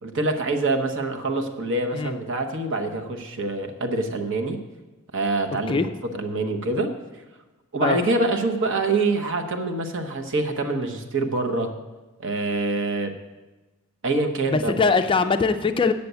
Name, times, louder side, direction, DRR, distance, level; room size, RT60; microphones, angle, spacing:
voice 1, 0.0-4.6 5.1-6.9 7.7-11.7 12.2-13.1 14.0-14.8, right 2 dB, 60° right, 5 dB, 1.0 m, -25 dB
voice 2, 14.5-15.9, left 4 dB, 25° left, 8 dB, 0.4 m, -21 dB
8.1 x 6.8 x 8.0 m, 1.2 s
head